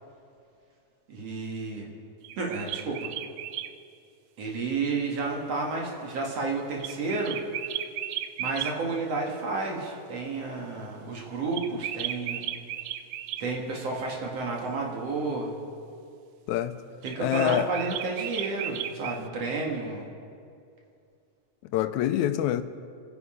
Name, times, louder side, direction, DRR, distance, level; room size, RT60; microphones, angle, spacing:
voice 1, 1.1-1.9 2.4-3.1 4.4-7.4 8.4-12.4 13.4-15.5 17.0-20.1, right 3 dB, 60° right, 2.8 m, -31 dB
sound 1, 2.2-3.7 6.8-8.7 11.5-13.5 17.0-19.2, right 12 dB, 80° right, 1.8 m, -35 dB
voice 2, 17.2-17.7 21.7-22.6, left 12 dB, 90° left, 2.0 m, -25 dB
27.0 x 10.0 x 5.0 m
omnidirectional pair, 3.4 m